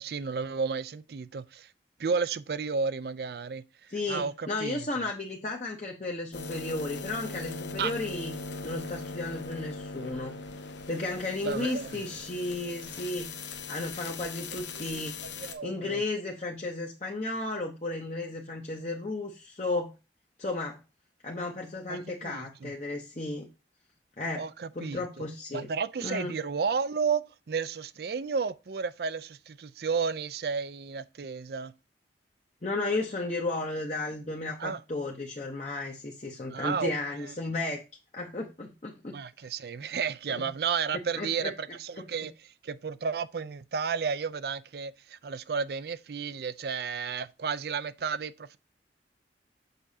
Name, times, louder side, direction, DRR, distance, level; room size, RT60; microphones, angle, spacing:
voice 1, 0.0-1.7 2.0-4.9 7.8-7.9 11.4-12.0 14.9-16.0 21.9-22.7 24.4-25.3 25.5-31.7 34.6-34.8 36.5-36.9 37.2-37.3 39.1-48.6, right 5 dB, 60° right, 0.4 m, -32 dB
voice 2, 3.9-8.3 8.6-10.4 10.9-13.3 13.7-15.2 15.6-19.9 20.4-20.8 21.2-23.5 24.2-24.4 24.7-25.7 26.0-26.3 32.6-37.8 38.1-39.2 40.3-40.5 41.2-41.5 42.0-42.1, left 2 dB, 40° left, 0.8 m, -34 dB
sound 1, 6.3-15.5, left 3 dB, 90° left, 1.0 m, -40 dB
6.7 x 6.0 x 2.7 m
head